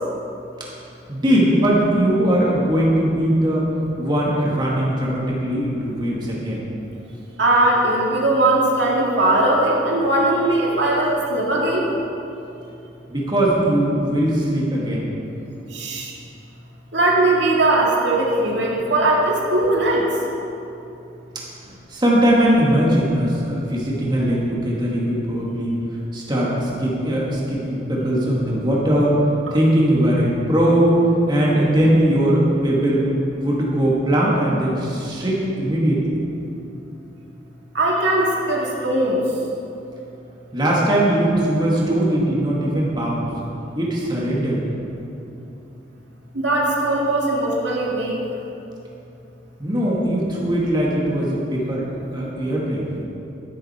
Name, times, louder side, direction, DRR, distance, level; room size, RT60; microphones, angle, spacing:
voice 1, 1.1-3.7 4.0-6.7 13.1-15.1 21.9-25.8 26.1-29.2 29.5-30.9 31.3-33.1 33.4-36.0 40.5-43.3 43.8-44.6 49.6-51.9 52.1-52.8, right 1 dB, 25° right, -5 dB, 2.1 m, -20 dB
voice 2, 7.4-11.9 15.7-16.1 16.9-20.1 37.7-39.2 46.3-48.2 52.4-52.5, right 2 dB, 75° right, -3 dB, 2.0 m, -19 dB
12.0 x 11.5 x 4.4 m, 2.8 s
head